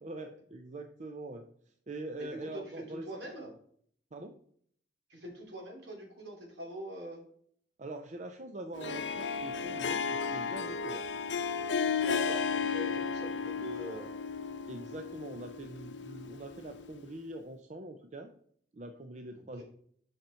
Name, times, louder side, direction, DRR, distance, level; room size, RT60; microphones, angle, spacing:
voice 1, 0.0-1.5 1.9-3.3 4.1-4.4 7.8-11.1 14.7-18.3 18.7-19.6, right 2 dB, 40° right, 6 dB, 0.5 m, -43 dB
voice 2, 2.2-3.5 5.1-7.2 12.0-14.1 19.3-19.6, equal, 70° right, -1 dB, 2.9 m, -43 dB
Harp, 8.7-17.0, left 5 dB, 75° left, 0.6 m, -34 dB
7.7 x 5.8 x 4.4 m, 0.62 s
head